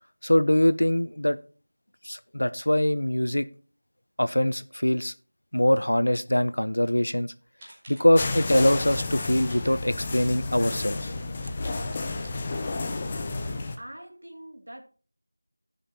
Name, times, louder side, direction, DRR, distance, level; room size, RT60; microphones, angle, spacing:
voice 1, 0.2-1.4 2.0-3.5 4.2-5.1 5.5-7.3 7.9-11.1, left 1 dB, 80° left, 1.0 m, -23 dB
sound 1, 7.0-7.2 7.6-8.4 9.3-10.2 10.6-10.7 11.3-12.9, equal, 10° right, 2.5 m, -52 dB
sound 2, 8.1-13.8, left 3 dB, 10° left, 0.5 m, -31 dB
voice 2, 13.8-14.8, right 1 dB, 55° right, 2.8 m, -43 dB
14.5 x 5.8 x 4.3 m
figure-of-eight pair, 180°, 0 cm